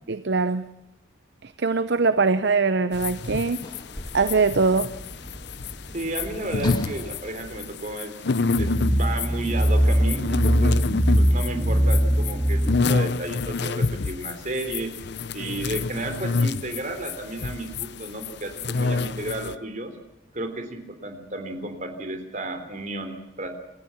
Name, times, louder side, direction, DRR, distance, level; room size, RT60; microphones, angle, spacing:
voice 1, 0.1-0.7 1.4-3.6 4.1-4.9, right 4 dB, 55° right, 0.7 m, -22 dB
sound 1, 2.9-19.5, left 4 dB, 55° left, 0.7 m, -28 dB
Sliding door / Slam, 3.6-8.6 9.5-9.6, left 1 dB, 20° left, 1.9 m, -39 dB
voice 2, 5.9-8.2 8.6-10.8 11.2-12.6 12.9-14.9 15.3-19.9 20.3-23.5, right 1 dB, 40° right, 3.5 m, -32 dB
sound 2, 8.6-12.8, equal, 5° right, 2.6 m, -21 dB
28.5 x 14.5 x 7.3 m
head